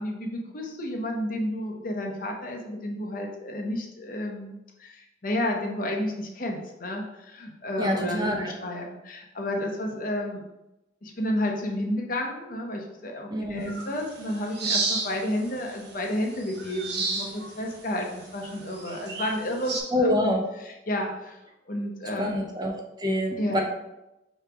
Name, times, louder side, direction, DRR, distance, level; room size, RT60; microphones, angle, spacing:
voice 1, 0.0-10.4 11.0-19.8 20.0-21.4 21.7-22.4 23.4-23.6, left 1 dB, 50° left, 1 dB, 0.7 m, -31 dB
voice 2, 7.8-8.5 13.3-13.7 19.9-20.4 22.2-22.7 23.0-23.6, left 1 dB, 25° right, 1 dB, 0.5 m, -26 dB
sound 1, 13.7-19.8, right 3 dB, 60° right, 0.9 m, -33 dB
5.0 x 3.1 x 3.3 m, 0.93 s
head